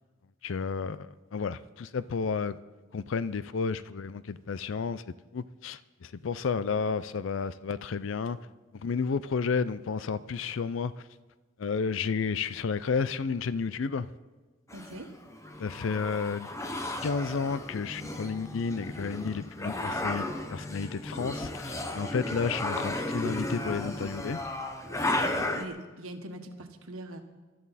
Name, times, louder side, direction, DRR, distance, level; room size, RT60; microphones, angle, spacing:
voice 1, 0.4-2.6 2.9-8.4 8.7-11.0 11.6-14.1 15.6-16.5 17.0-24.4, left 5 dB, 65° left, 0.4 m, -32 dB
sound 1, 14.7-25.6, left 1 dB, 15° left, 0.9 m, -34 dB
voice 2, 14.7-15.1 25.0-27.2, right 1 dB, 90° right, 1.5 m, -43 dB
23.0 x 12.5 x 4.2 m
head